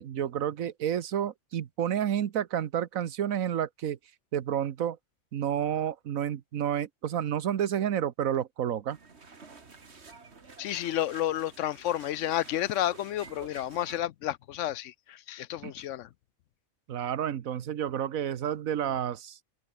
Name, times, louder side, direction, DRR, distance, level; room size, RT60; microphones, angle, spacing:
voice 1, 0.0-4.0 4.3-5.0 5.3-9.0 15.6-15.7 16.9-19.4, right 9 dB, 85° right, 1.4 m, -30 dB
sound 1, 8.9-14.0, right 4 dB, 55° right, 2.4 m, -50 dB
voice 2, 10.6-16.1, left 12 dB, 70° left, 0.9 m, -31 dB
omnidirectional pair, 1.4 m